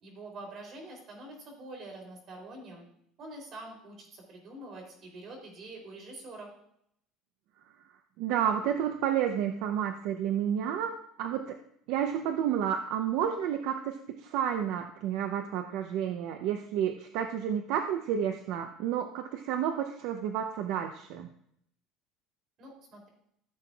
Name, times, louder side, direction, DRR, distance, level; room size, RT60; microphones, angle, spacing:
voice 1, 0.0-2.8 3.2-6.5 22.6-23.1, right 2 dB, 40° right, 1 dB, 3.2 m, -45 dB
voice 2, 8.2-11.6 11.9-21.3, right 9 dB, 65° right, 6 dB, 0.6 m, -31 dB
14.5 x 7.6 x 2.4 m, 0.71 s
cardioid pair, 160°, 0 cm